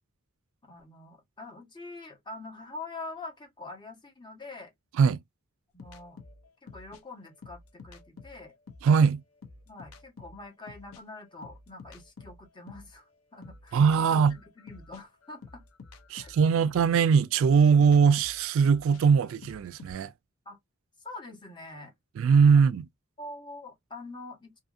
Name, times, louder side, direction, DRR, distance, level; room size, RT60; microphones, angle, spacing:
voice 1, 0.7-4.7 5.7-6.2 6.6-8.5 9.7-15.6 16.1-16.7 20.4-20.6 21.0-21.9 22.5-22.6 23.2-24.6, left 2 dB, 20° left, 1.1 m, -45 dB
sound 1, 5.8-9.0 9.4-13.0 13.4-19.9, left 4 dB, 80° left, 0.7 m, -50 dB
voice 2, 8.8-9.2 13.7-14.3 16.1-20.1 22.2-22.9, right 6 dB, 65° right, 0.3 m, -21 dB
2.7 x 2.6 x 2.4 m
head